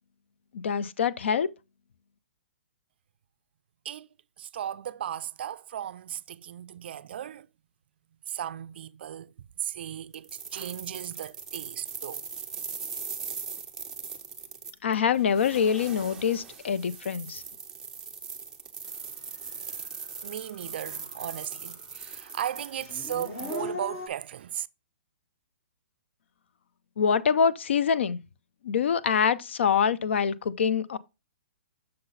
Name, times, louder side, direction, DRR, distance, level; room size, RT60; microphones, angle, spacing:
voice 1, 0.5-1.5 14.8-17.4 27.0-28.2 28.6-31.0, left 7 dB, 70° left, 0.5 m, -25 dB
voice 2, 4.4-7.5 8.3-9.3 9.6-12.2 20.2-24.7, right 10 dB, 55° right, 0.3 m, -36 dB
sound 1, 10.1-23.6, right 5 dB, 5° right, 0.6 m, -40 dB
Dog / Siren, 19.7-19.8 20.3-21.7 22.0-24.1, left 3 dB, 25° left, 0.8 m, -39 dB
6.5 x 3.9 x 4.0 m
hypercardioid pair, 155°, 7 cm